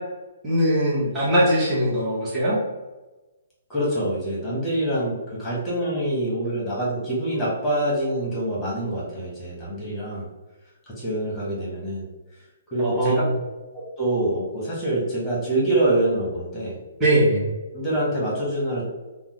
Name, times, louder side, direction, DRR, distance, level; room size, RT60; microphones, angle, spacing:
voice 1, 0.4-2.6 12.8-13.2 17.0-17.5, equal, 10° right, -9 dB, 1.0 m, -21 dB
voice 2, 3.7-10.3 11.0-12.0 12.7-13.2 14.0-16.8 17.7-18.8, right 1 dB, 15° left, -6 dB, 1.3 m, -25 dB
3.5 x 2.1 x 3.0 m, 1.1 s
hypercardioid pair, 145°, 0 cm